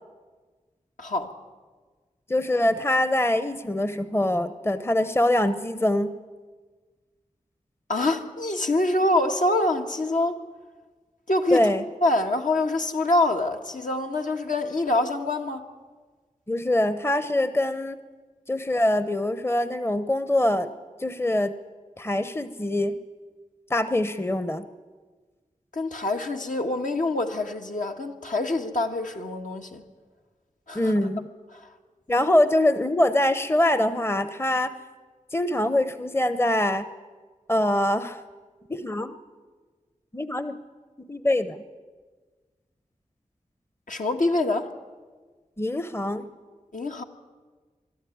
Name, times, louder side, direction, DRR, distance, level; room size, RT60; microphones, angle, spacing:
voice 1, 1.0-1.3 7.9-10.4 11.3-11.7 12.0-15.6 25.7-29.8 30.7-30.9 31.5-31.7 43.9-44.7 46.7-47.0, left 2 dB, 70° left, 1.6 m, -25 dB
voice 2, 2.3-6.1 11.5-11.8 16.5-18.0 18.5-20.7 21.0-21.5 22.0-22.9 23.7-24.7 30.7-31.3 32.1-34.7 35.3-36.9 37.5-38.2 38.7-39.2 40.1-40.6 41.0-41.6 45.6-46.3, left 1 dB, 15° left, 0.8 m, -24 dB
23.0 x 12.5 x 9.3 m
wide cardioid pair, 55°, 14 cm